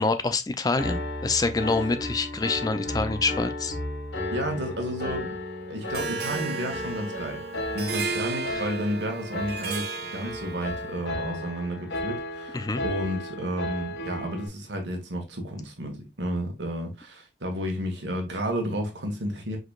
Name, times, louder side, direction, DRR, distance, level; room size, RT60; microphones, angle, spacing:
voice 1, 0.0-3.8 8.5-8.6 12.5-12.8, left 3 dB, 20° left, 0.4 m, -26 dB
Piano, 0.8-14.5, left 1 dB, 80° left, 1.3 m, -34 dB
voice 2, 4.3-5.4 5.7-7.4 7.7-19.6, equal, 75° right, 1.4 m, -32 dB
Harp, 5.9-10.9, right 4 dB, 60° right, 0.7 m, -34 dB
5.1 x 3.9 x 2.3 m
head